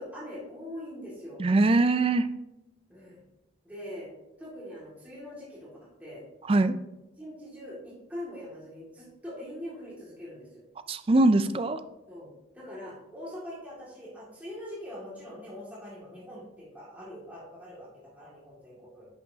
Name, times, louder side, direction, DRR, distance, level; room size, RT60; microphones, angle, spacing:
voice 1, 0.0-1.4 2.9-3.2 3.6-4.1 4.4-5.7 6.0-6.2 7.2-10.6 12.1-19.1, left 1 dB, 10° right, -7 dB, 2.1 m, -42 dB
voice 2, 1.4-2.3 6.5-6.8 10.9-11.8, right 2 dB, 30° right, 11 dB, 0.4 m, -22 dB
10.5 x 6.0 x 2.8 m, 0.95 s
head